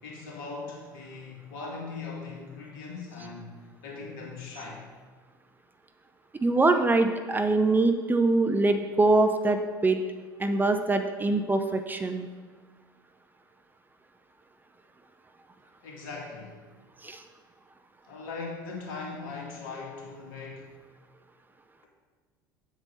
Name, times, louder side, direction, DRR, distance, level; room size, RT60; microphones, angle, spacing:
voice 1, 0.0-4.9 15.8-16.6 18.1-20.7, left 4 dB, 60° left, -2 dB, 2.3 m, -40 dB
voice 2, 6.4-10.0 10.4-12.3 17.0-17.2, right 2 dB, 15° right, 7 dB, 0.6 m, -23 dB
7.9 x 7.7 x 4.0 m, 1.5 s
figure-of-eight pair, 70°, 11 cm